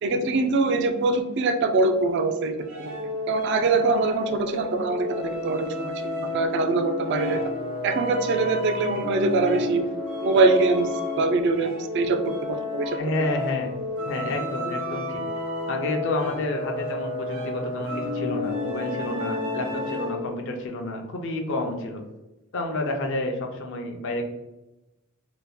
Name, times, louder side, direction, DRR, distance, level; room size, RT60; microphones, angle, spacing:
voice 1, 0.0-3.0 3.3-7.4 7.8-9.9 10.2-13.0, right 3 dB, 55° right, 7 dB, 0.3 m, -23 dB
sound 1, 2.6-20.3, left 2 dB, 75° right, 0.8 m, -31 dB
voice 2, 12.9-13.7 14.1-15.2 15.7-22.0 22.5-24.2, left 2 dB, 60° left, 3 dB, 0.5 m, -30 dB
2.9 x 2.2 x 3.5 m, 0.99 s
head